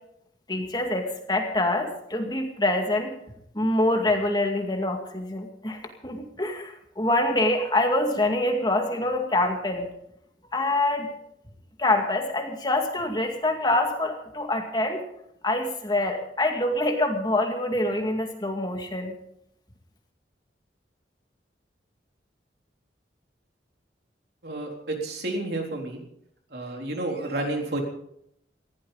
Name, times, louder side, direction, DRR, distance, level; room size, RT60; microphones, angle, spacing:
voice 1, 0.5-3.1 3.5-9.9 10.5-11.1 11.8-15.0 15.4-19.2, left 1 dB, 25° left, 3 dB, 2.2 m, -25 dB
voice 2, 24.4-26.0 26.5-27.8, right 2 dB, 60° right, 2 dB, 3.8 m, -30 dB
20.0 x 16.0 x 4.0 m, 0.74 s
head